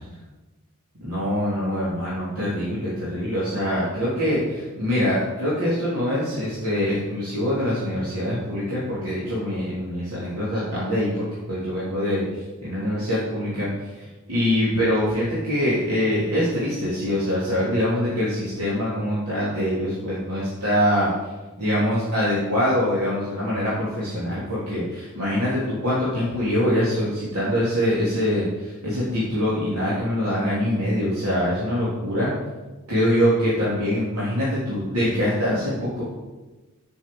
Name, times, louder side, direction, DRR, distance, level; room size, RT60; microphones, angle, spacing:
voice 1, 1.0-12.2 12.6-13.7 14.3-21.1 21.6-32.3 32.9-36.0, equal, 80° right, -8 dB, 3.0 m, -24 dB
7.6 x 6.3 x 7.5 m, 1.2 s
head